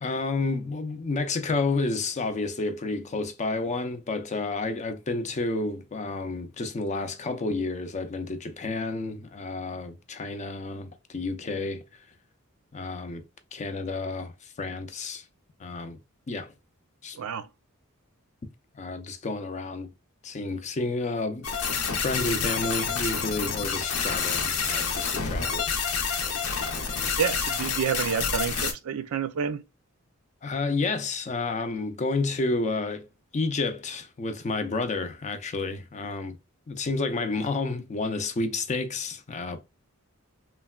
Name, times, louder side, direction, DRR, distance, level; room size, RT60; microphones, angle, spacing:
voice 1, 0.0-12.0 12.7-13.2 13.5-15.2 15.6-16.0 16.3-16.5 17.0-17.2 18.7-19.9 20.2-21.5 21.9-26.2 30.4-33.1 33.3-36.4 36.7-39.6, left 3 dB, 35° left, 0.4 m, -30 dB
sound 1, 21.4-28.7, left 6 dB, 75° left, 0.7 m, -28 dB
voice 2, 26.9-29.6, right 7 dB, 80° right, 0.4 m, -29 dB
3.1 x 2.1 x 2.3 m
head